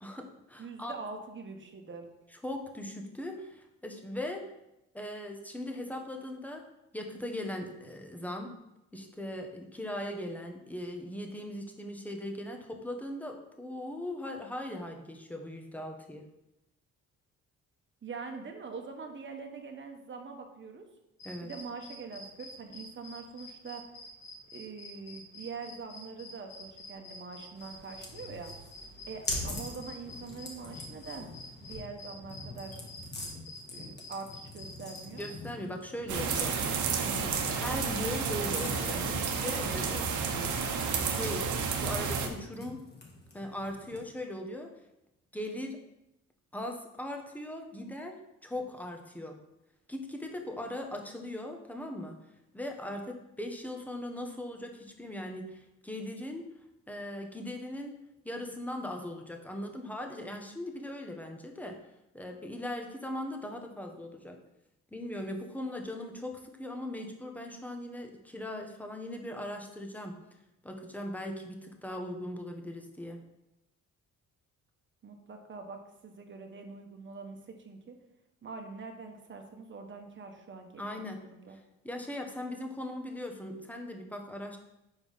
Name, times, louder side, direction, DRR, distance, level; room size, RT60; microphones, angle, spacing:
voice 1, 0.0-1.0 2.4-4.5 4.9-6.6 6.9-8.5 8.9-16.2 21.2-21.5 35.2-36.5 37.0-42.8 43.3-44.7 45.3-45.8 46.5-49.4 49.9-52.1 52.5-56.5 56.9-58.0 58.2-61.8 62.1-64.4 64.9-70.1 70.6-73.2 80.8-81.2 81.5-81.6 81.8-84.6, left 1 dB, 5° left, 3 dB, 1.1 m, -39 dB
voice 2, 0.6-2.1 18.0-20.8 21.4-23.8 24.5-28.5 29.1-31.3 31.6-32.8 33.7-35.2 75.0-77.9 78.4-81.6, right 4 dB, 40° right, 4 dB, 1.3 m, -44 dB
sound 1, 21.2-35.5, left 1 dB, 80° left, 2.7 m, -48 dB
sound 2, 27.6-44.2, left 2 dB, 35° left, 2.0 m, -45 dB
sound 3, 36.1-42.3, right 5 dB, 80° right, 1.0 m, -31 dB
5.4 x 4.5 x 5.5 m, 0.89 s
cardioid pair, 90°, 30 cm